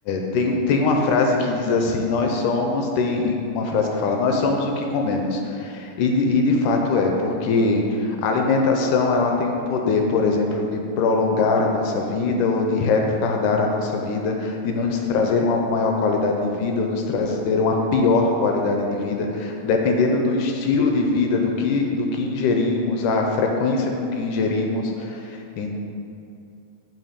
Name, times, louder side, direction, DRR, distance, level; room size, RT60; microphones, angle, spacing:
voice 1, 0.1-25.7, left 3 dB, 80° left, 2 dB, 1.9 m, -22 dB
7.5 x 2.6 x 4.9 m, 2.5 s
omnidirectional pair, 3.9 m